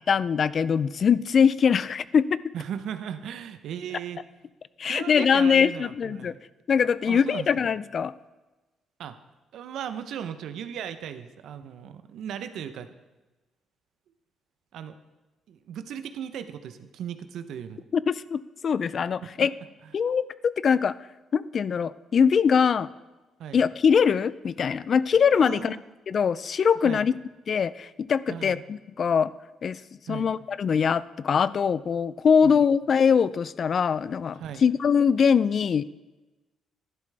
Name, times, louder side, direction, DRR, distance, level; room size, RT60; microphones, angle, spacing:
voice 1, 0.1-2.4 4.8-6.3 6.7-8.1 17.9-19.5 19.9-21.0 21.3-22.9 23.5-25.8 26.1-27.2 27.5-29.3 29.6-29.8 30.1-35.8, left 6 dB, 50° left, 18 dB, 0.3 m, -22 dB
voice 2, 2.5-4.2 4.8-6.4 7.0-7.5 9.0-9.2 9.5-12.9 14.7-14.9 15.5-17.8 19.2-19.3 23.4-23.6 25.4-25.8 26.8-27.1 28.3-28.6 30.1-30.3 32.4-32.6 34.4-34.6, right 9 dB, 75° right, 10 dB, 0.7 m, -37 dB
11.5 x 10.5 x 3.3 m, 1.1 s
cardioid pair, 90°, 0 cm